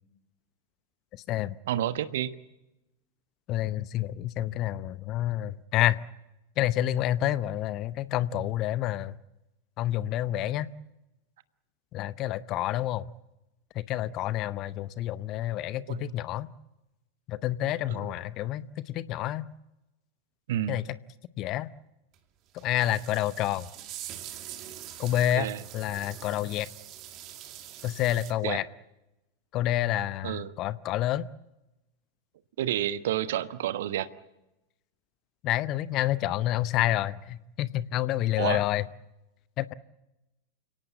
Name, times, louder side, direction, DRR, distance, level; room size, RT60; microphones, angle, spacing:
voice 1, 1.7-2.3 15.9-16.1 17.9-18.1 20.5-20.8 25.3-25.6 28.4-28.6 30.2-30.5 32.6-34.1 38.4-38.6, right 12 dB, 55° right, 13 dB, 1.2 m, -30 dB
voice 2, 3.5-6.0 6.6-9.1 9.8-10.7 11.9-13.1 13.9-16.5 17.3-19.4 20.7-20.8 21.4-21.7 22.5-23.7 25.0-26.7 27.8-28.6 29.5-31.3 35.4-38.9 39.6-39.7, left 13 dB, 35° left, 17 dB, 0.8 m, -28 dB
sound 1, 22.1-22.2 22.6-28.3, right 12 dB, 35° right, 2.5 m, -44 dB
29.5 x 18.0 x 8.3 m, 0.95 s
figure-of-eight pair, 90°, 0 cm